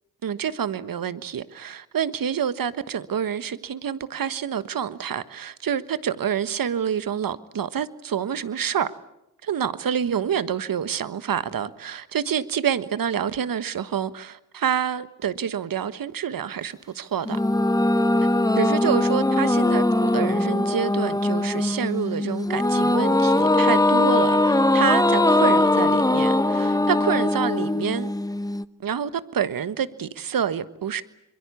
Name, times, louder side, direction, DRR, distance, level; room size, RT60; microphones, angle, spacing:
voice 1, 0.2-8.9 9.4-17.4 18.6-28.1 28.8-31.0, right 8 dB, 60° right, 1.4 m, -27 dB
sound 1, 17.3-28.6, left 2 dB, 10° left, 1.0 m, -21 dB
25.5 x 23.0 x 8.4 m
supercardioid pair, 50°, 38 cm